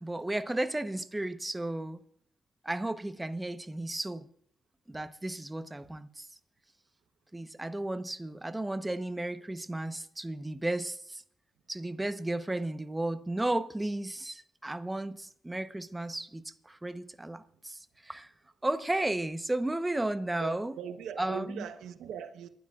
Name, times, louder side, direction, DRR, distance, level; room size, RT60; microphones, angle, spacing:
voice 1, 0.0-2.0 2.6-4.3 4.9-6.3 7.3-11.2 11.7-18.3 18.6-20.7 21.2-21.7, right 1 dB, 15° right, 1.0 m, -34 dB
voice 2, 20.4-22.5, right 7 dB, 90° right, 1.0 m, -40 dB
29.0 x 12.0 x 2.5 m
cardioid pair, 75°, 0 cm